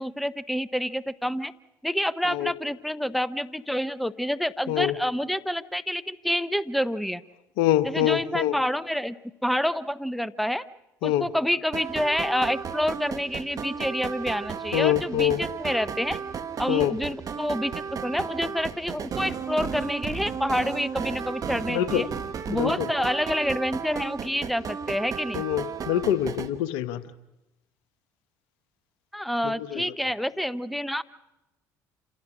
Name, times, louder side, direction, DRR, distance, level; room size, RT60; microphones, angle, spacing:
voice 1, 0.0-1.5 1.8-7.2 7.8-9.2 9.4-10.6 11.0-16.2 16.6-22.1 22.5-25.4 29.1-31.0, equal, ahead, 15 dB, 0.8 m, -28 dB
voice 2, 7.6-8.6 11.0-11.3 14.7-15.4 16.7-16.9 21.7-22.1 22.5-22.9 25.3-27.0 29.4-29.9, left 12 dB, 75° left, 13 dB, 1.0 m, -25 dB
sound 1, 11.7-26.5, right 7 dB, 45° right, 1.4 m, -34 dB
27.5 x 16.0 x 6.1 m, 0.95 s
hypercardioid pair, 65°, 8 cm